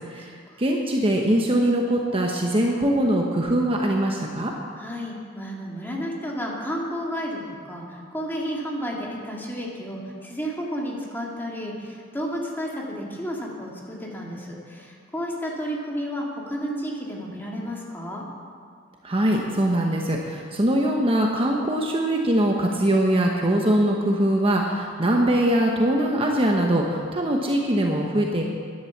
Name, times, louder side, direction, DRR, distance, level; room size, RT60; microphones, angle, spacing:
voice 1, 0.6-4.5 19.0-28.4, right 1 dB, 30° right, 0 dB, 1.0 m, -22 dB
voice 2, 4.8-18.2, equal, 10° left, -2 dB, 2.3 m, -32 dB
11.5 x 10.5 x 7.3 m, 2.1 s
head